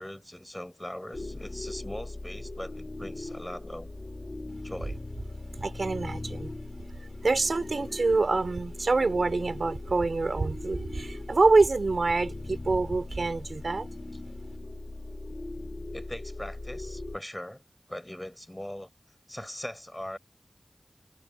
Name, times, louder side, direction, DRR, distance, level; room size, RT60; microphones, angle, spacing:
voice 1, 0.0-3.9 4.6-5.0 15.9-17.6 17.9-18.9 19.3-20.2, left 1 dB, 15° left, 6.4 m, -40 dB
sound 1, 1.1-17.2, left 2 dB, 50° left, 2.7 m, -39 dB
voice 2, 5.6-6.5 7.2-13.9, right 3 dB, 90° right, 4.3 m, -26 dB
wide cardioid pair, 45°, 0 cm